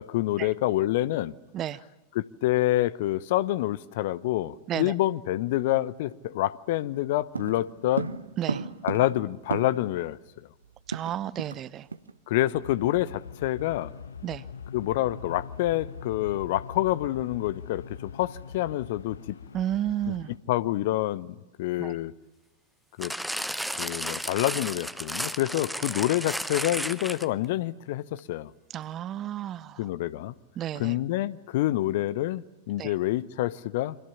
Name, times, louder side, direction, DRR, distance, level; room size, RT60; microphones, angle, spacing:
voice 1, 0.0-1.3 2.1-8.1 8.8-10.2 12.3-13.9 14.7-19.4 20.1-20.2 20.5-22.1 23.0-23.1 23.8-28.5 29.8-30.3 30.7-34.0, left 15 dB, 50° left, 0.9 m, -27 dB
sound 1, 7.3-10.0 10.3-10.4 10.6-11.6 11.9-12.1 12.5-12.7, right 4 dB, 75° right, 1.1 m, -34 dB
voice 2, 8.4-8.7 10.9-11.9 14.2-14.4 19.5-20.3 21.8-21.9 28.7-29.9 30.6-31.0 32.8-32.9, right 11 dB, 30° right, 0.9 m, -32 dB
sound 2, 12.5-20.4, left 6 dB, 70° left, 1.2 m, -42 dB
sound 3, 23.0-27.5 28.2-28.3, equal, ahead, 0.9 m, -33 dB
29.5 x 25.0 x 7.2 m
figure-of-eight pair, 90°, 0 cm